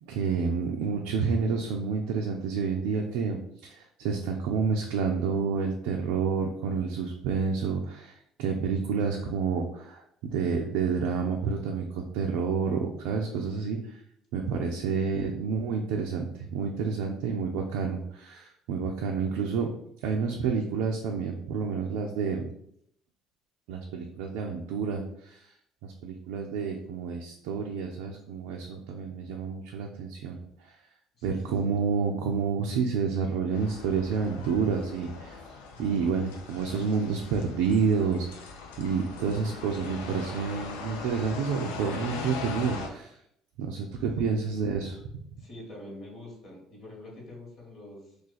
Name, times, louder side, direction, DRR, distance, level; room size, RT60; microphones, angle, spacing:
voice 1, 0.0-14.0 14.3-19.7 20.0-22.5 23.7-25.4 25.8-30.4 30.6-30.7 31.2-35.4 35.8-43.2 43.6-45.0, right 5 dB, 80° right, 1 dB, 0.4 m, -29 dB
voice 2, 14.7-15.1 31.1-31.8 44.2-44.4 45.4-48.2, left 1 dB, 60° left, -1 dB, 1.4 m, -46 dB
sound 1, 33.5-42.9, left 4 dB, 90° left, 0.4 m, -40 dB
2.4 x 2.4 x 3.9 m, 0.73 s
supercardioid pair, 70°, 0 cm